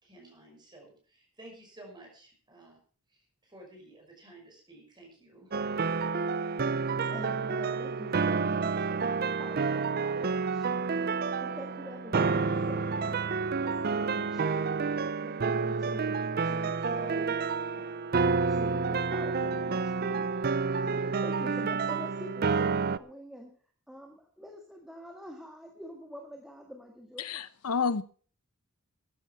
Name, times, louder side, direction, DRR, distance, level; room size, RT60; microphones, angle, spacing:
voice 1, 0.0-2.8 3.1-5.5, right 1 dB, 20° right, 1 dB, 5.7 m, -53 dB
sound 1, 5.5-23.0, right 4 dB, 45° right, 0.5 m, -29 dB
voice 2, 7.1-14.7 15.2-17.4 17.8-23.5 23.9-27.4, equal, ahead, 1 dB, 1.8 m, -46 dB
voice 3, 27.2-28.0, left 5 dB, 85° left, 15 dB, 0.8 m, -30 dB
14.0 x 10.0 x 5.8 m, 0.42 s
head